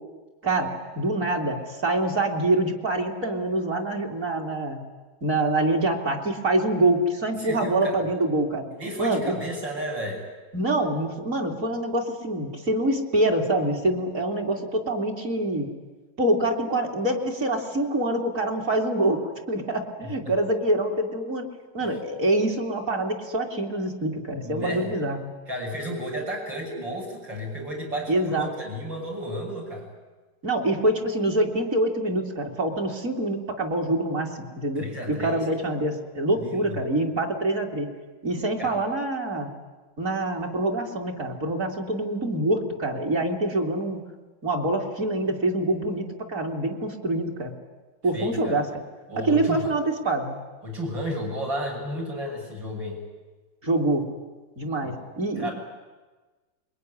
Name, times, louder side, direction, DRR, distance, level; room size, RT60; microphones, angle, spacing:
voice 1, 0.4-4.8 5.2-8.6 9.0-9.4 10.5-15.7 16.2-19.2 19.5-21.5 21.7-25.3 28.1-28.5 30.4-37.9 38.2-39.5 40.0-44.0 44.4-47.5 48.0-48.7 49.2-50.4 53.6-54.0 54.6-55.5, right 1 dB, 45° right, 0 dB, 3.1 m, -25 dB
voice 2, 7.4-7.9 8.7-10.2 21.8-21.9 24.4-25.0 25.5-29.9 34.8-35.4 36.3-36.8 38.6-38.7 48.1-48.6 49.1-49.7 50.6-53.0 54.8-54.9 55.4-55.5, equal, 75° right, -1 dB, 8.0 m, -32 dB
26.0 x 22.5 x 9.9 m, 1.3 s
omnidirectional pair, 2.0 m